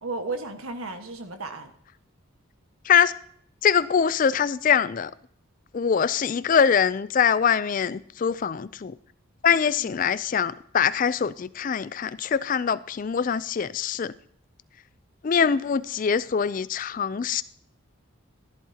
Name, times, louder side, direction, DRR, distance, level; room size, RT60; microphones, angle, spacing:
voice 1, 0.0-1.7 9.5-9.9, right 3 dB, 90° right, 1.5 m, -34 dB
voice 2, 3.6-5.1 5.7-8.9 9.4-14.1 15.2-17.4, left 7 dB, 40° left, 0.3 m, -23 dB
13.5 x 11.5 x 2.8 m
head